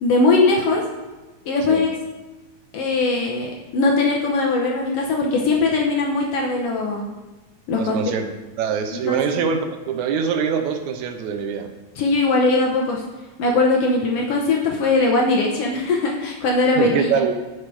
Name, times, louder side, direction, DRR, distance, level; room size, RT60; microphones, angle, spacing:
voice 1, 0.0-0.8 1.5-1.9 2.7-7.1 7.7-8.0 8.9-9.2 12.0-13.0 13.4-17.2, left 3 dB, 70° left, 0 dB, 1.5 m, -20 dB
voice 2, 7.8-8.3 8.6-11.7 16.8-17.3, right 6 dB, 75° right, 6 dB, 2.0 m, -23 dB
7.6 x 6.9 x 4.8 m, 1.2 s
omnidirectional pair, 3.6 m